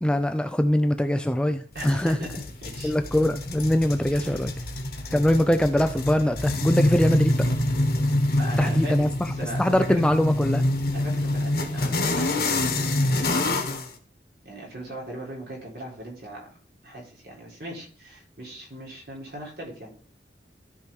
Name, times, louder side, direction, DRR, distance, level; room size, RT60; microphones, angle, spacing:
voice 1, 0.0-2.2 2.8-4.5 5.1-7.4 8.6-9.3 9.6-10.6, left 1 dB, 5° left, 8 dB, 0.4 m, -22 dB
voice 2, 1.7-2.3 2.6-2.9 4.1-4.4 4.9-5.1 8.3-10.0 10.9-12.3 13.1-13.4 14.4-16.5 16.8-19.9, right 1 dB, 65° right, -3 dB, 3.8 m, -39 dB
sound 1, 1.8-13.9, left 1 dB, 60° left, 1.3 m, -26 dB
13.5 x 4.7 x 3.6 m, 0.43 s
head